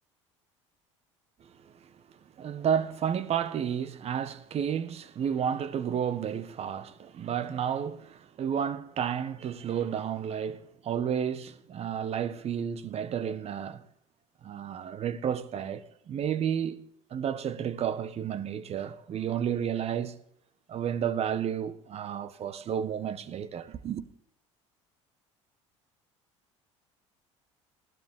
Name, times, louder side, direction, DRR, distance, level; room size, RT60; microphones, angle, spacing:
voice 1, 1.4-2.0 2.4-13.8 14.4-16.8 17.1-20.1 20.7-24.0, right 8 dB, 40° right, 1.5 m, -31 dB
20.5 x 17.0 x 3.9 m
figure-of-eight pair, 65°, 16 cm